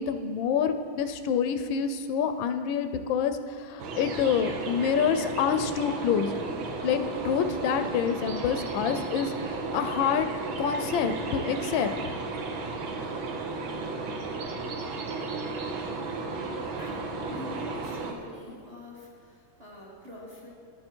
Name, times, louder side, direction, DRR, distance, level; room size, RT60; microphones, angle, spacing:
voice 1, 0.0-6.5 6.8-7.0 7.2-10.3 10.6-11.9, left 7 dB, 80° left, 8 dB, 1.3 m, -27 dB
sound 1, 3.8-18.1, right 3 dB, 85° right, 1.7 m, -34 dB
voice 2, 16.8-20.5, left 2 dB, 25° right, -3 dB, 1.2 m, -45 dB
11.0 x 7.9 x 4.4 m, 2.2 s
omnidirectional pair, 2.1 m